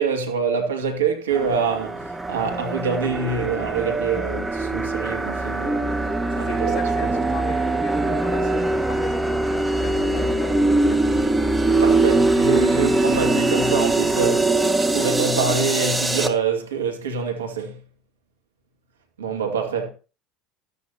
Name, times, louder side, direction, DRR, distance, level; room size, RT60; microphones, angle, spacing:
voice 1, 0.0-5.9 6.4-6.8 11.7-17.8 19.2-19.9, right 5 dB, 90° right, 2.3 m, -25 dB
sound 1, 1.3-16.3, right 2 dB, 10° right, 1.9 m, -22 dB
voice 2, 6.5-11.4, left 4 dB, 45° left, 5.9 m, -37 dB
13.5 x 13.0 x 2.9 m
hypercardioid pair, 80°, 0 cm